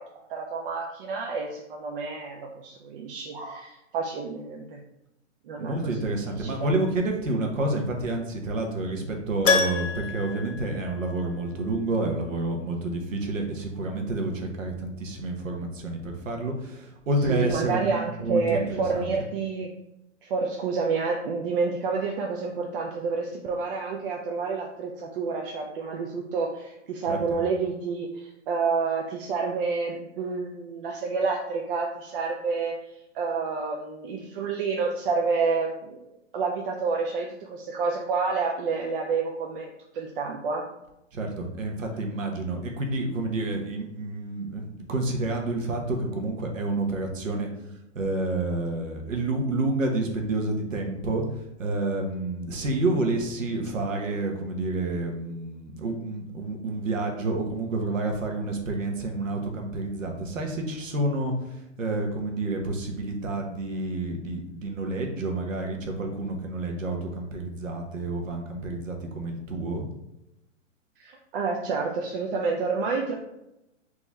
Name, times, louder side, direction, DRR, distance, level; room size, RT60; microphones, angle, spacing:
voice 1, 0.0-4.8 5.5-6.7 17.3-19.7 20.2-32.7 33.1-36.0 36.3-40.6 71.0-73.1, right 4 dB, 45° right, 1 dB, 0.6 m, -29 dB
voice 2, 5.6-19.1 27.0-27.4 41.1-47.5 47.9-69.9, right 2 dB, 85° right, 2 dB, 1.1 m, -29 dB
Keyboard (musical), 9.4-11.5 11.8-11.9 14.6-14.7 14.9-15.0, left 4 dB, 85° left, 0.8 m, -27 dB
3.7 x 3.0 x 4.1 m, 0.88 s
hypercardioid pair, 130°, 38 cm